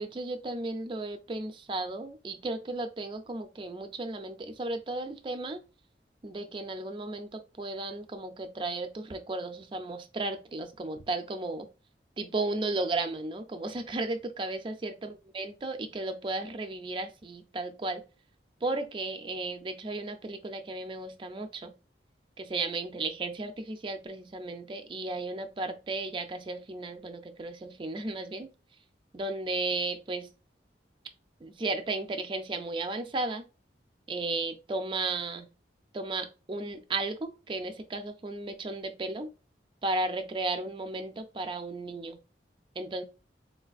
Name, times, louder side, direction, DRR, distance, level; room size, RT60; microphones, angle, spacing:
voice 1, 0.0-5.6 6.2-11.7 12.2-18.0 18.6-21.7 22.4-28.5 29.1-30.3 31.4-33.4 34.1-35.5 35.9-39.3 39.8-42.2 42.8-43.0, right 2 dB, 30° right, 0.4 m, -34 dB
3.8 x 2.4 x 2.4 m
head